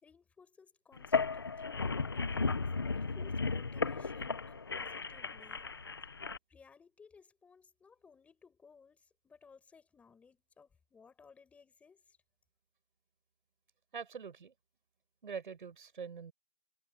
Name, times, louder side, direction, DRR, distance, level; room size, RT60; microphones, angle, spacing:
voice 1, 0.0-2.7 2.9-5.7 6.5-12.2, left 5 dB, 5° left, 5.5 m, -60 dB
sound 1, 1.0-6.4, left 4 dB, 20° left, 0.7 m, -35 dB
voice 2, 13.9-14.5 15.2-16.3, right 6 dB, 50° right, 5.6 m, -44 dB
hypercardioid pair, 175°, 33 cm